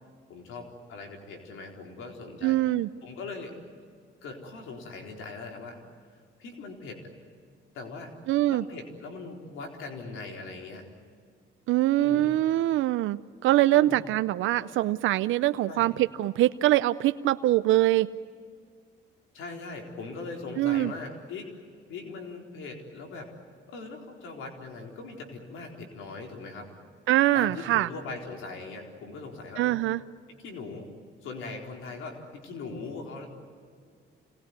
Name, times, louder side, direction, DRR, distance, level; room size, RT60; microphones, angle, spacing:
voice 1, 0.3-2.6 3.0-3.6 4.2-5.8 6.4-7.1 7.7-8.1 8.5-10.8 12.0-12.3 13.7-14.0 14.5-14.7 15.7-15.9 19.3-21.5 21.9-23.3 23.7-26.7 27.3-29.8 30.3-30.9 31.2-33.3, left 3 dB, 85° left, 2 dB, 4.2 m, -40 dB
voice 2, 2.4-2.9 8.3-8.6 11.7-18.1 20.6-20.9 27.1-27.9 29.6-30.0, right 15 dB, 85° right, 12 dB, 0.6 m, -23 dB
27.0 x 20.0 x 9.5 m, 2.1 s
cardioid pair, 90°, 20 cm